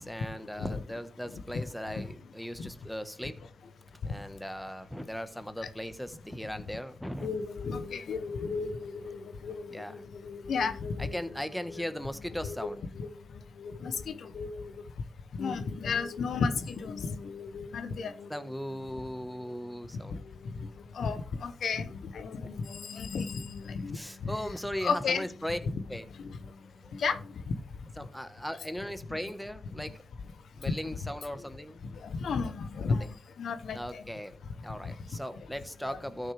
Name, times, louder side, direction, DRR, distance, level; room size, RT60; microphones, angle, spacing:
voice 1, 0.0-3.4 4.0-7.3 9.7-10.0 11.0-12.8 18.3-20.2 20.6-20.7 21.1-21.2 21.7-21.8 23.9-25.6 25.9-26.1 26.6-26.9 28.0-30.0 30.5-32.0 32.8-33.1 33.7-34.3 34.6-36.3, equal, 5° left, 1.2 m, -38 dB
voice 2, 7.2-11.2 11.8-11.9 12.4-12.6 13.0-14.7 15.3-18.5 20.1-20.7 20.9-24.3 24.8-25.3 26.2-26.3 26.9-27.5 30.6-30.8 32.0-34.0 34.9-35.0, left 5 dB, 80° left, 0.8 m, -34 dB
13.5 x 6.1 x 3.4 m
cardioid pair, 50°, 0 cm